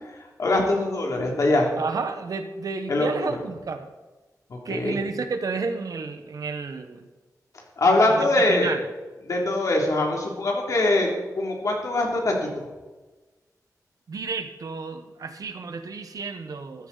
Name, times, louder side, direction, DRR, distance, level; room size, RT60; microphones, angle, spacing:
voice 1, 0.4-1.7 2.9-3.3 4.5-5.0 7.8-8.7 9.3-11.1 11.3-12.7, left 2 dB, 55° left, 0 dB, 3.1 m, -22 dB
voice 2, 1.7-3.9 4.6-7.1 8.1-8.8 14.1-16.9, right 4 dB, 65° right, 8 dB, 1.2 m, -31 dB
14.5 x 13.0 x 4.1 m, 1.2 s
wide cardioid pair, 160°, 7 cm